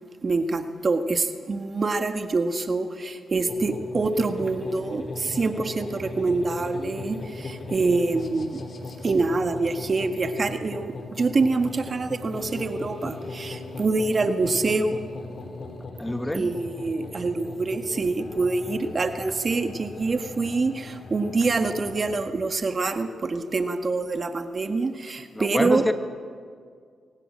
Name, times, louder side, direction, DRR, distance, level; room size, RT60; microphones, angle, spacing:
voice 1, 0.2-8.6 9.0-15.1 16.3-25.9, right 3 dB, 45° right, 8 dB, 1.6 m, -25 dB
sound 1, 3.5-22.3, left 3 dB, 50° left, 3.0 m, -38 dB
voice 2, 16.0-16.5 25.3-25.9, left 1 dB, 15° left, 9 dB, 1.4 m, -26 dB
24.0 x 18.5 x 7.7 m, 2.1 s
supercardioid pair, 55°, 0 cm